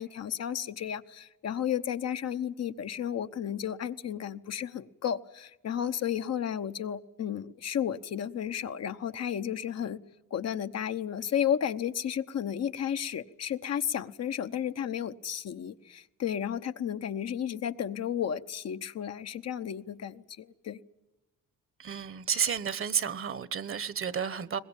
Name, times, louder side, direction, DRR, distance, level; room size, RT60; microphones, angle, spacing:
voice 1, 0.0-10.0 10.3-20.8, left 9 dB, 55° left, 1.0 m, -33 dB
voice 2, 21.8-24.6, right 7 dB, 45° right, 1.2 m, -31 dB
22.5 x 20.0 x 9.1 m
cardioid pair, 90°, 30 cm